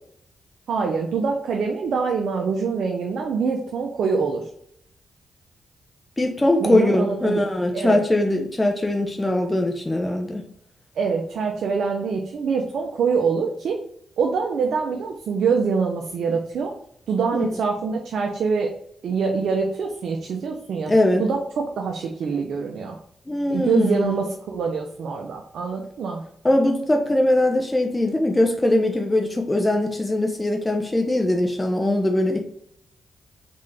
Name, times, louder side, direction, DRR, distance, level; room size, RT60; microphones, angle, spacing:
voice 1, 0.7-4.5 6.6-7.4 7.7-8.0 11.0-13.8 14.2-16.7 17.1-18.7 19.0-20.9 21.2-23.0 23.5-26.3, right 5 dB, 75° right, 2 dB, 0.6 m, -25 dB
voice 2, 6.2-10.4 17.3-17.4 20.9-21.2 23.3-24.3 26.4-32.4, left 1 dB, 20° left, 3 dB, 0.7 m, -21 dB
3.8 x 3.6 x 3.3 m, 0.69 s
cardioid pair, 65°, 0 cm